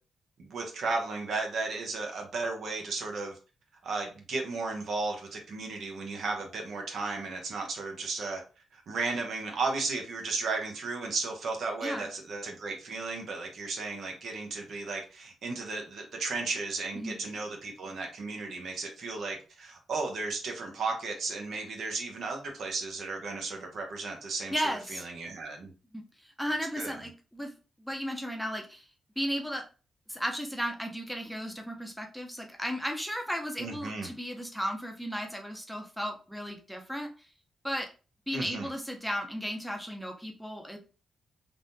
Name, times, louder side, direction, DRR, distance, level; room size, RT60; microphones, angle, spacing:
voice 1, 0.4-3.4 3.8-8.4 8.7-24.5 24.9-25.7 26.8-26.9 33.6-34.1 38.3-38.7, right 3 dB, 70° right, 2 dB, 0.8 m, -34 dB
voice 2, 24.5-25.0 25.9-27.5 27.8-28.9 29.2-29.6 30.1-37.1 37.6-37.9 38.3-40.8, equal, ahead, 2 dB, 0.6 m, -35 dB
3.4 x 2.2 x 2.6 m, 0.34 s
cardioid pair, 80°, 0 cm